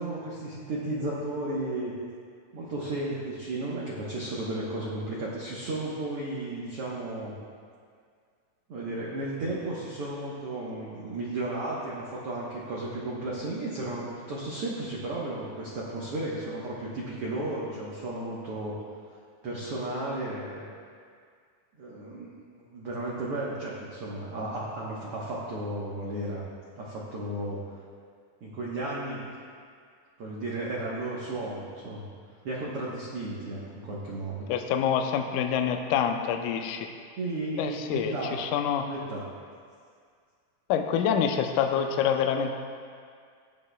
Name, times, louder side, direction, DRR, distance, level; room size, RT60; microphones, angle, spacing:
voice 1, 0.0-1.9 2.5-7.3 8.7-18.7 19.4-20.6 21.8-22.3 22.6-26.4 26.7-27.6 28.4-29.2 30.2-32.1 32.4-34.5 37.2-38.3 38.9-39.3, right 2 dB, 65° right, -6 dB, 1.4 m, -34 dB
voice 2, 34.5-36.9 37.6-38.9 40.7-42.5, left 8 dB, 80° left, 5 dB, 1.8 m, -26 dB
17.0 x 8.7 x 2.3 m, 2.1 s
omnidirectional pair, 4.2 m